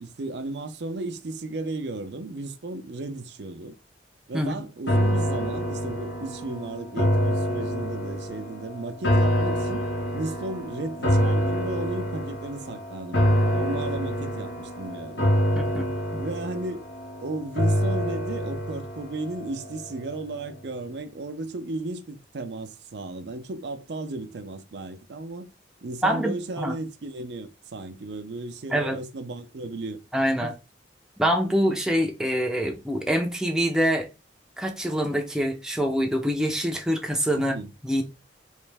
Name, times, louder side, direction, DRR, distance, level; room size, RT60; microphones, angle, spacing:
voice 1, 0.0-3.8 4.3-9.8 10.1-15.2 16.2-16.9 17.2-25.5 25.8-30.0 30.4-30.5 37.3-37.7, right 2 dB, 65° right, 0.5 m, -34 dB
sound 1, 4.9-20.2 20.5-20.6, equal, 85° left, 1.2 m, -26 dB
voice 2, 15.5-16.2 26.0-26.7 28.7-29.0 30.1-30.5 31.2-34.1 34.6-37.6 37.8-38.0, equal, 5° right, 0.5 m, -25 dB
3.2 x 3.1 x 3.3 m
head